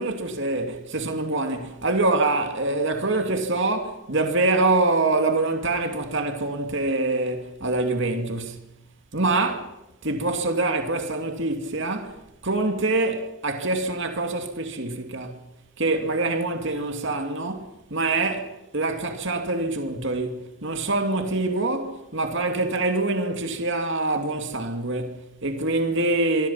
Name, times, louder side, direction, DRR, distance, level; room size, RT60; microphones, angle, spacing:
voice 1, 0.0-8.6 9.1-9.7 10.0-15.4 15.8-26.5, right 2 dB, 55° right, 2.7 m, -25 dB
27.5 x 22.5 x 5.8 m
head